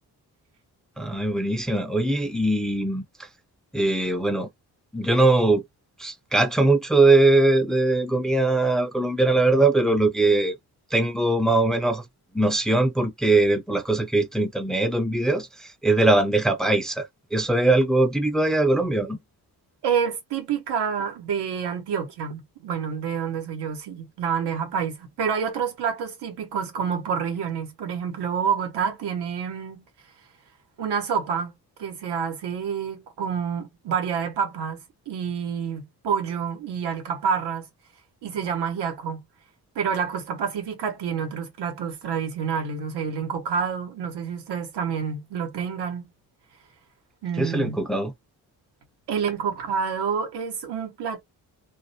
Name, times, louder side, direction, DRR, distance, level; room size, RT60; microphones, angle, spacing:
voice 1, 1.0-3.0 3.7-4.5 4.9-5.6 6.0-10.6 10.9-12.0 12.3-19.2 47.4-48.1, right 2 dB, ahead, 0.5 m, -21 dB
voice 2, 19.8-29.9 30.8-31.5 31.8-34.8 35.1-37.7 38.2-39.2 39.7-46.1 47.2-47.8 49.1-51.2, right 7 dB, 85° right, 1.1 m, -28 dB
2.5 x 2.1 x 2.7 m
cardioid pair, 70°, 39 cm